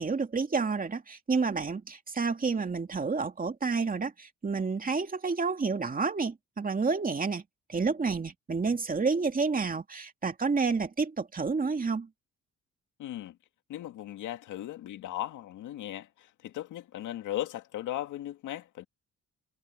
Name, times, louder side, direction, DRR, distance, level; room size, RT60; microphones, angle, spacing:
voice 1, 0.0-7.4 7.7-12.1, right 4 dB, 30° right, 2.5 m, -29 dB
voice 2, 13.0-13.4 13.7-18.9, left 13 dB, 85° left, 2.3 m, -37 dB
cardioid pair, 90°, 30 cm